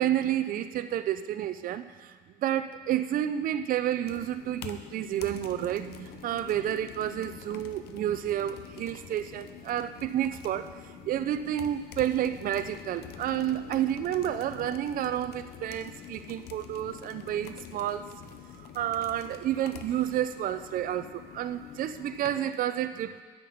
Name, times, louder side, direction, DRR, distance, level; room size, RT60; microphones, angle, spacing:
voice 1, 0.0-18.1 18.5-23.2, right 11 dB, 55° right, 11 dB, 0.5 m, -30 dB
sound 1, 4.1-22.4, left 10 dB, 70° left, 0.6 m, -46 dB
9.1 x 6.7 x 5.7 m, 1.5 s
cardioid pair, 110°, 17 cm